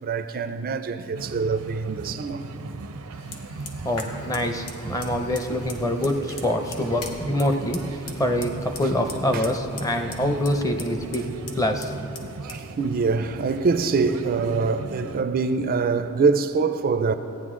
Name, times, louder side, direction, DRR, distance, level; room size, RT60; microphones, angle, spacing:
voice 1, 0.0-2.4 9.3-9.5 12.4-17.1, right 4 dB, 40° right, 0.4 m, -24 dB
sound 1, 1.1-15.2, right 3 dB, 90° right, 0.6 m, -38 dB
Fire, 3.1-14.9, left 3 dB, 85° left, 1.1 m, -43 dB
voice 2, 3.8-11.2 11.6-11.9, left 1 dB, 15° left, 0.6 m, -25 dB
15.5 x 9.4 x 3.7 m
head